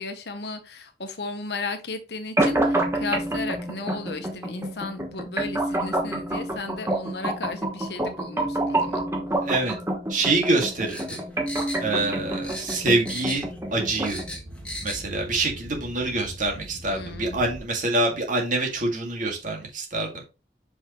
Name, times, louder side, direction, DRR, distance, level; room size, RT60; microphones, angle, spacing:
voice 1, 0.0-9.0 16.8-17.4, left 3 dB, 70° left, 1.0 m, -35 dB
sound 1, 2.4-14.4, right 1 dB, 15° right, 1.2 m, -28 dB
voice 2, 9.4-9.8 10.1-11.2 11.8-13.4 13.7-14.2 14.8-20.2, right 2 dB, 45° right, 2.1 m, -25 dB
sound 2, 10.8-12.2 12.4-13.6 13.8-15.0 15.3-15.4, left 1 dB, 5° left, 1.7 m, -36 dB
sound 3, 12.0-17.6, equal, 80° right, 2.0 m, -43 dB
5.7 x 5.3 x 3.1 m
head